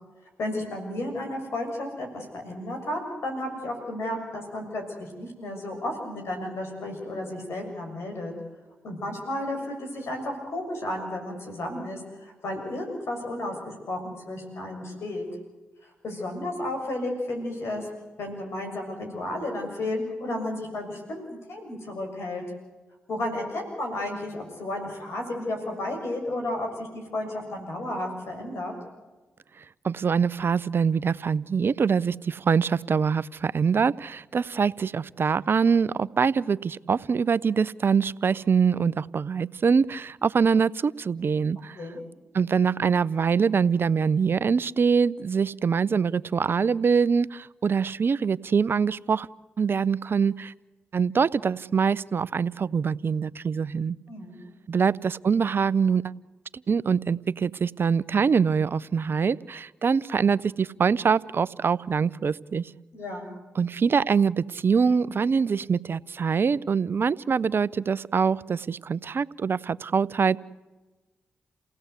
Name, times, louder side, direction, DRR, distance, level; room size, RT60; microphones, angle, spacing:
voice 1, 0.4-8.3 8.8-15.3 16.0-17.9 18.2-22.4 23.1-28.7 41.7-42.0 54.1-54.4 62.9-63.3, left 1 dB, 70° left, 2 dB, 6.8 m, -33 dB
voice 2, 29.8-41.8 42.3-49.3 49.6-50.5 50.9-54.0 54.7-56.0 56.7-62.7 63.6-70.4, right 6 dB, 55° right, 20 dB, 0.7 m, -24 dB
28.5 x 17.0 x 8.2 m, 1.2 s
supercardioid pair, 45°, 5 cm